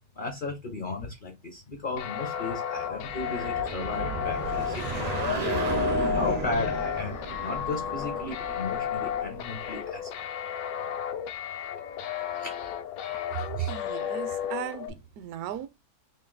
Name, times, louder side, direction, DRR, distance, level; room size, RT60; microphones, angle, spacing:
voice 1, 0.2-5.5 6.1-7.1 7.4-10.1 12.4-12.5 13.3-13.7, left 3 dB, 50° left, 0.6 m, -35 dB
sound 1, 2.0-14.9, left 8 dB, 70° left, 1.0 m, -32 dB
sound 2, 2.9-9.5, right 4 dB, 90° right, 0.3 m, -34 dB
voice 2, 13.5-15.7, right 12 dB, 70° right, 1.0 m, -35 dB
3.2 x 2.6 x 3.8 m
omnidirectional pair, 1.8 m